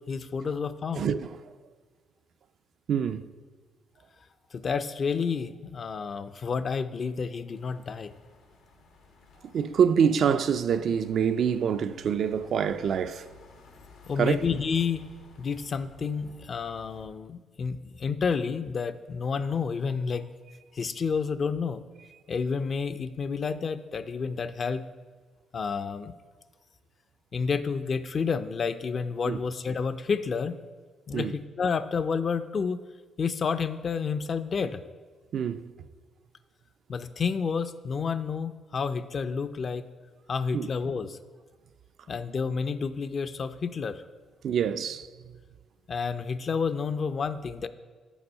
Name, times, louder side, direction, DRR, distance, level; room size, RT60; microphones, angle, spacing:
voice 1, 0.1-1.1 4.5-8.1 14.1-15.0 15.4-20.3 20.7-21.8 22.3-24.9 25.5-26.1 27.3-30.5 31.1-32.8 33.2-34.8 36.9-39.9 40.3-41.2 42.1-44.0 45.9-47.7, left 5 dB, 45° left, 0.4 m, -30 dB
voice 2, 1.0-1.4 2.9-3.3 9.5-13.3 14.2-14.4 29.2-29.4 31.1-31.3 35.3-35.7 40.5-40.7 44.4-45.1, right 7 dB, 65° right, 0.3 m, -26 dB
sound 1, 7.5-17.1, left 4 dB, 90° left, 1.2 m, -54 dB
7.1 x 6.0 x 5.4 m
cardioid pair, 90°, 0 cm